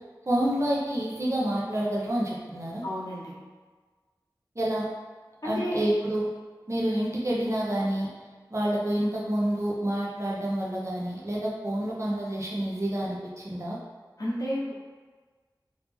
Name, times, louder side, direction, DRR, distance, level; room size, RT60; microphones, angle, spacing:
voice 1, 0.3-2.8 4.6-4.9 5.4-6.3 6.7-8.1 8.5-13.8, right 1 dB, 40° right, -5 dB, 0.8 m, -28 dB
voice 2, 2.8-3.4 5.4-5.8 14.2-14.7, equal, 50° left, -7 dB, 1.0 m, -31 dB
3.1 x 2.7 x 3.6 m, 1.4 s
wide cardioid pair, 50°, 8 cm